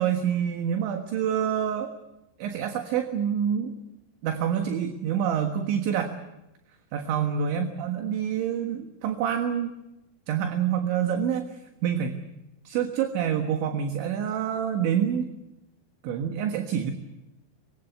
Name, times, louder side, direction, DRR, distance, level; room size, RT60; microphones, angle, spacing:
voice 1, 0.0-1.9 2.4-3.7 4.2-6.2 6.9-9.7 10.3-12.2 12.7-15.3 16.0-16.9, right 8 dB, 70° right, 6 dB, 3.7 m, -27 dB
24.5 x 23.5 x 8.0 m, 0.93 s
omnidirectional pair, 5.9 m